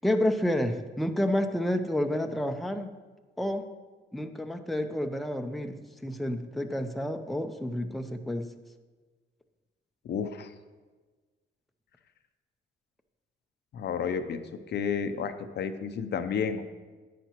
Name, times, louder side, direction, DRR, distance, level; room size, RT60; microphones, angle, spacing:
voice 1, 0.0-2.9 3.4-3.7 4.1-5.8 6.0-8.5, left 1 dB, ahead, 6 dB, 0.5 m, -29 dB
voice 2, 10.0-10.5 13.7-14.4 14.7-16.7, left 6 dB, 60° left, 9 dB, 0.6 m, -31 dB
10.0 x 9.1 x 3.0 m, 1.3 s
cardioid pair, 90°, 20 cm